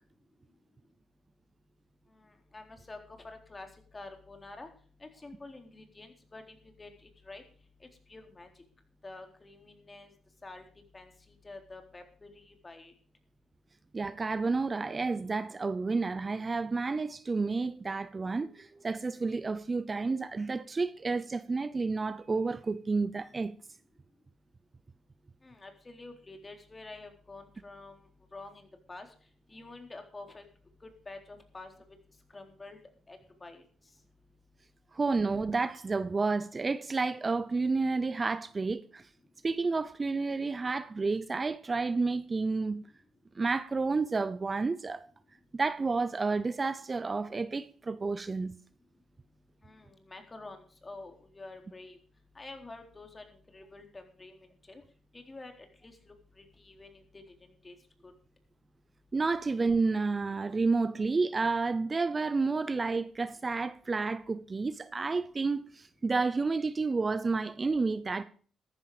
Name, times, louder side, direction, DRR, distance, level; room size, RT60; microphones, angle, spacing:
voice 1, 2.2-3.0 3.2-3.7 3.9-4.7 5.0-6.9 7.2-7.4 8.1-8.5 9.0-10.1 10.4-10.6 10.9-11.1 11.4-12.9 25.4-29.1 29.5-30.4 30.8-31.7 32.3-32.8 33.1-33.6 49.6-52.0 52.4-54.8 55.1-55.5 55.8-57.8 58.0-58.1, left 2 dB, 30° left, 3.9 m, -48 dB
voice 2, 13.9-23.5 34.9-39.1 39.4-42.8 43.3-45.1 45.5-48.5 59.1-68.2, right 4 dB, 35° right, 0.7 m, -30 dB
14.0 x 11.0 x 5.0 m
supercardioid pair, 65°, 0 cm